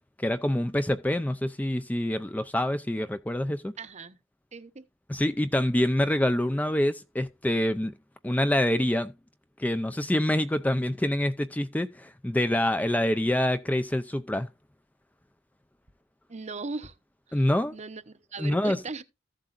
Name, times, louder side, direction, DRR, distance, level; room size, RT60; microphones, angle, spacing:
voice 1, 0.2-3.7 5.1-7.9 8.2-9.1 9.6-14.5 17.3-17.7 18.4-18.8, left 1 dB, 10° left, 0.5 m, -26 dB
voice 2, 3.8-4.2 4.5-4.8 16.3-16.9 17.3-19.0, right 3 dB, 35° right, 0.8 m, -39 dB
14.5 x 7.6 x 2.5 m
head